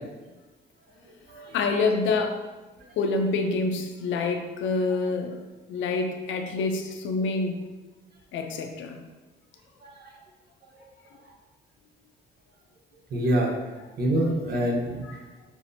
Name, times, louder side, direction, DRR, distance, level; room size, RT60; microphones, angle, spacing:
voice 1, 1.5-2.4 3.0-5.4 5.7-7.6 8.3-9.0 15.0-15.1, left 3 dB, 75° left, 4 dB, 0.5 m, -27 dB
voice 2, 9.8-10.1 13.1-13.5 14.0-15.0, right 1 dB, 55° right, 0 dB, 0.9 m, -26 dB
5.7 x 2.0 x 2.7 m, 1.2 s
cardioid pair, 90°, 20 cm